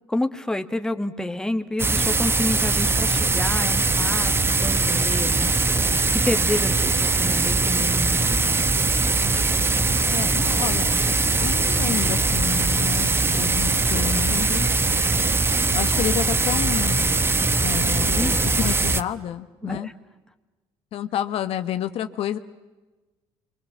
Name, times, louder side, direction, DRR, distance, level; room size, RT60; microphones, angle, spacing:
voice 1, 0.1-8.6 18.1-18.4 19.6-19.9, left 1 dB, 5° left, 6 dB, 1.8 m, -29 dB
sound 1, 1.8-19.0, right 3 dB, 20° right, 1.0 m, -21 dB
voice 2, 10.1-10.9 11.4-13.1 13.4-14.7 15.7-17.2 17.6-19.9 20.9-22.4, left 10 dB, 65° left, 10 dB, 1.2 m, -29 dB
26.5 x 24.5 x 7.4 m, 1.2 s
supercardioid pair, 80°, 11 cm